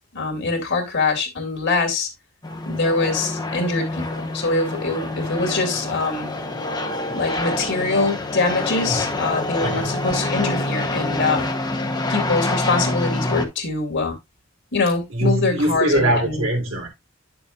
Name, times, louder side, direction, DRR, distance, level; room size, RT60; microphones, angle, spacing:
voice 1, 0.1-2.1 2.7-6.3 7.1-11.5 12.1-14.1 14.7-16.5, left 3 dB, 65° left, 2.5 m, -23 dB
sound 1, 2.4-13.5, left 2 dB, 20° left, 0.9 m, -26 dB
voice 2, 9.6-10.0 15.1-16.9, right 1 dB, 85° right, 3.3 m, -22 dB
9.7 x 7.0 x 2.4 m
head